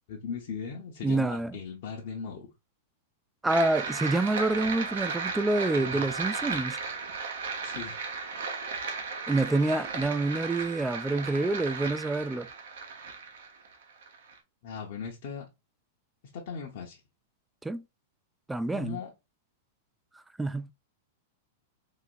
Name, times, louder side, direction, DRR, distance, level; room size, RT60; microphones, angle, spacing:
voice 1, 0.1-2.5 5.7-6.0 7.6-8.0 14.6-15.5 16.3-17.0 18.7-19.1, left 6 dB, 55° left, 0.9 m, -38 dB
voice 2, 1.0-1.5 3.4-6.8 9.3-12.5 17.6-17.8 18.5-19.0 20.4-20.7, right 2 dB, 10° right, 0.3 m, -27 dB
sound 1, 3.5-14.4, right 4 dB, 70° right, 0.9 m, -35 dB
4.1 x 2.9 x 2.4 m
hypercardioid pair, 105°, 0 cm